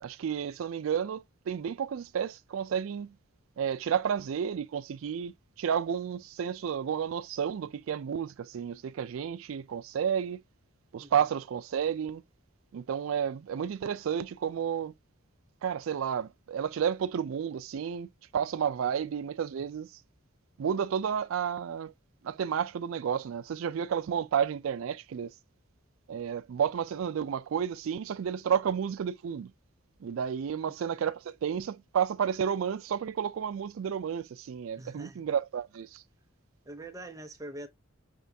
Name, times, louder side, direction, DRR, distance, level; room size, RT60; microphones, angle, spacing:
voice 1, 0.0-3.1 3.6-5.3 5.6-10.4 10.9-12.2 12.7-14.9 15.6-19.9 20.6-21.9 22.2-25.3 26.1-29.5 30.0-36.0, right 8 dB, 85° right, 0.4 m, -31 dB
voice 2, 34.8-35.2 36.7-37.7, right 1 dB, 15° right, 0.6 m, -44 dB
5.9 x 3.4 x 2.6 m
head